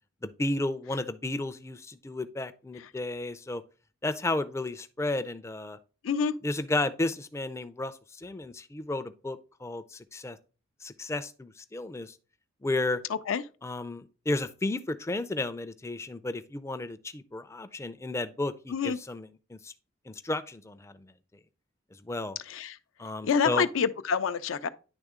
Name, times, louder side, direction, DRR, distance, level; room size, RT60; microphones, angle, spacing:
voice 1, 0.2-3.6 4.0-5.8 6.4-10.4 10.8-12.1 12.6-13.0 13.6-19.7 20.1-21.1 22.0-22.4 23.0-23.7, left 2 dB, 15° left, 0.4 m, -33 dB
voice 2, 23.3-24.7, left 6 dB, 80° left, 0.4 m, -27 dB
10.0 x 3.4 x 3.6 m
head